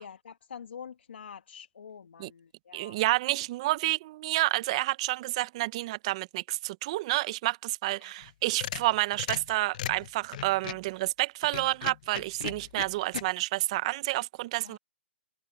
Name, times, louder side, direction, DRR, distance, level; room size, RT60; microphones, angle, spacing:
voice 1, 0.0-3.0 8.0-8.2 14.6-14.8, left 7 dB, 75° left, 1.9 m, -46 dB
voice 2, 2.7-14.8, right 18 dB, 30° right, 0.6 m, -29 dB
sound 1, 8.2-10.9 11.4-13.2, left 12 dB, 45° left, 0.6 m, -37 dB
hypercardioid pair, 155°, 6 cm